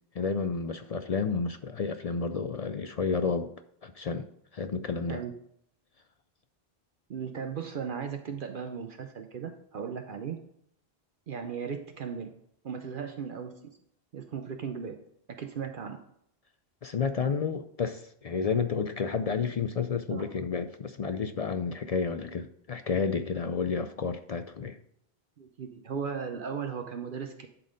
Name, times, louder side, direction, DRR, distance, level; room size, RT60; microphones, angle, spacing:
voice 1, 0.2-3.5 3.8-4.3 4.5-5.2 16.8-24.8, left 5 dB, 55° left, 0.4 m, -31 dB
voice 2, 7.1-10.4 11.3-12.3 12.6-13.6 14.1-14.9 15.4-16.0 20.1-20.2 25.4-27.5, right 6 dB, 60° right, 0.8 m, -36 dB
11.0 x 4.1 x 5.1 m
omnidirectional pair, 1.0 m